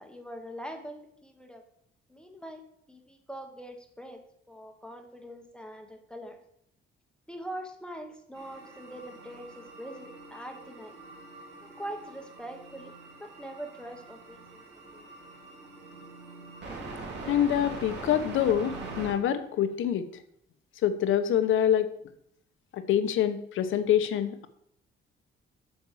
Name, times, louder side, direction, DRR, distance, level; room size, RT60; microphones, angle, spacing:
voice 1, 0.0-1.6 2.1-4.2 4.5-6.4 7.3-10.9 11.6-14.6 14.9-15.0, right 1 dB, 5° left, 4 dB, 0.9 m, -43 dB
sound 1, 8.3-19.1, right 3 dB, 55° right, 3.0 m, -43 dB
voice 2, 17.3-20.1 20.8-21.9 22.7-24.5, left 10 dB, 70° left, 10 dB, 1.0 m, -26 dB
8.1 x 6.1 x 7.2 m, 0.72 s
cardioid pair, 170°, 21 cm